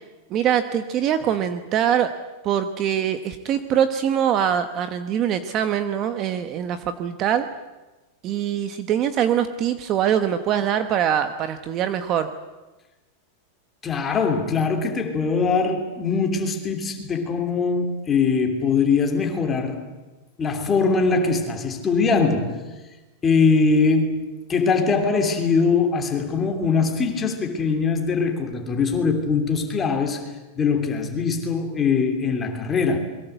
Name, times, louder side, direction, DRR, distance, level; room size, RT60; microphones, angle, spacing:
voice 1, 0.3-2.1 2.4-7.5 8.2-12.3, right 9 dB, 25° right, 1.0 m, -23 dB
voice 2, 13.8-19.8 20.4-22.6 23.2-33.0, left 4 dB, 15° left, 3.0 m, -22 dB
27.5 x 22.5 x 8.1 m
supercardioid pair, 175°, 0 cm